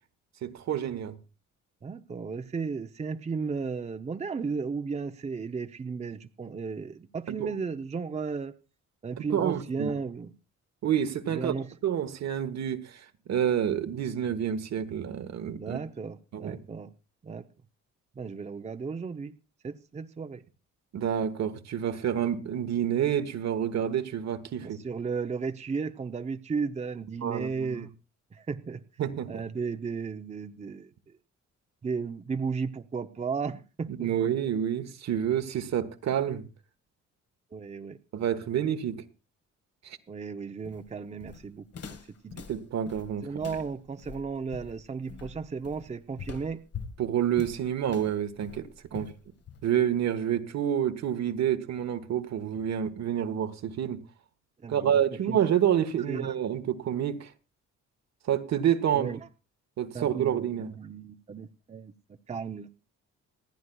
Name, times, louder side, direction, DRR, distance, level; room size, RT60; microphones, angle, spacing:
voice 1, 0.4-1.2 7.3-7.5 9.2-9.9 10.8-11.5 11.8-13.0 13.3-15.8 16.3-16.6 20.9-24.8 27.2-27.9 29.0-29.4 34.0-36.4 38.1-39.0 39.8-40.0 42.5-43.2 47.0-49.1 49.6-54.0 54.7-57.3 58.3-59.2 59.8-60.7, right 9 dB, 60° right, 1.2 m, -28 dB
voice 2, 1.8-8.5 9.0-10.3 11.3-11.7 15.6-16.9 17.2-17.5 18.2-19.4 19.6-20.4 24.6-27.9 28.3-28.8 29.3-30.9 31.8-34.1 37.5-38.0 40.1-41.6 42.2-42.5 43.2-46.6 48.9-49.1 54.6-55.0 55.3-55.4 56.1-56.4 58.9-59.2 59.9-61.9 62.3-62.7, right 5 dB, 25° right, 0.6 m, -34 dB
Walk footsteps, 40.6-49.9, left 6 dB, 55° left, 1.3 m, -44 dB
27.0 x 9.4 x 2.3 m
cardioid pair, 90°, 30 cm